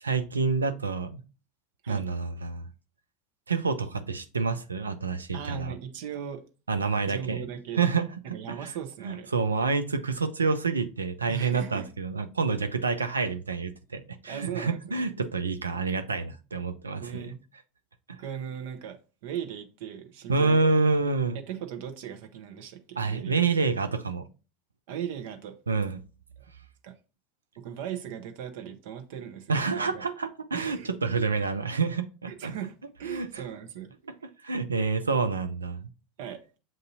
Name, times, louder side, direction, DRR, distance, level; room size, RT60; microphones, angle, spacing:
voice 1, 0.0-1.2 1.9-2.6 3.5-5.8 6.7-7.5 7.8-8.1 8.5-8.7 9.0-17.3 18.1-18.2 20.3-21.4 23.0-24.3 25.7-26.0 29.5-32.6 33.0-33.4 34.4-35.9, right 4 dB, 90° right, 0.4 m, -28 dB
voice 2, 5.3-6.4 7.1-7.8 8.3-9.3 11.3-11.9 14.2-15.0 17.0-17.4 18.2-19.0 19.2-20.6 21.5-23.3 24.9-25.5 26.8-26.9 27.6-30.0 30.5-30.9 32.4-33.9 36.2-36.4, right 9 dB, 65° right, 0.8 m, -38 dB
7.3 x 2.6 x 2.7 m
figure-of-eight pair, 80°, 0 cm